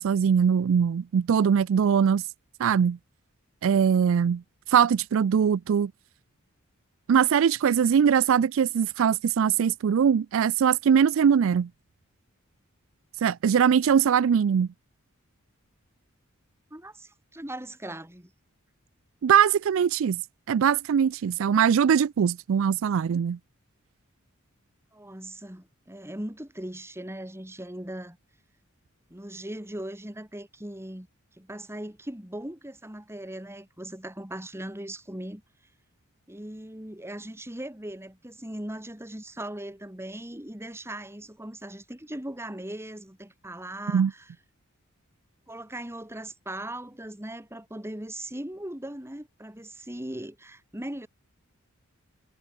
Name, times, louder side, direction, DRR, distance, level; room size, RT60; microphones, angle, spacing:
voice 1, 0.0-2.3 2.6-3.0 3.6-4.4 4.7-5.9 7.1-11.7 13.2-14.7 19.2-20.2 20.5-23.4 43.9-44.1, right 7 dB, 65° right, 0.3 m, -21 dB
voice 2, 16.7-18.3 24.9-28.2 29.1-31.1 31.4-35.4 36.3-44.3 45.5-51.1, right 1 dB, 10° right, 2.6 m, -39 dB
head